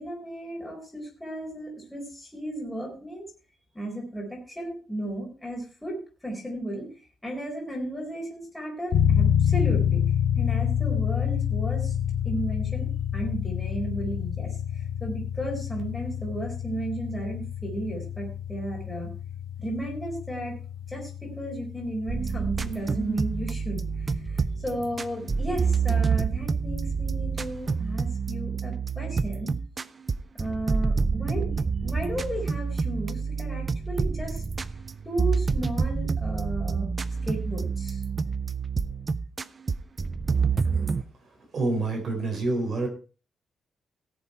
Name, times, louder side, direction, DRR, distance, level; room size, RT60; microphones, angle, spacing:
voice 1, 0.0-3.3 3.7-6.0 6.2-6.9 7.2-10.0 10.3-11.9 12.2-19.1 19.6-20.6 20.9-29.5 30.3-31.6 31.8-34.4 35.0-36.9 37.2-38.0, right 1 dB, 5° left, -2 dB, 4.6 m, -34 dB
sound 1, 8.9-25.7, left 9 dB, 60° left, 2.7 m, -28 dB
sound 2, 22.1-41.0, right 5 dB, 25° right, 0.5 m, -28 dB
voice 2, 41.5-42.9, right 2 dB, 40° right, 2 dB, 4.3 m, -27 dB
17.0 x 7.1 x 4.4 m, 0.35 s
wide cardioid pair, 165°, 0 cm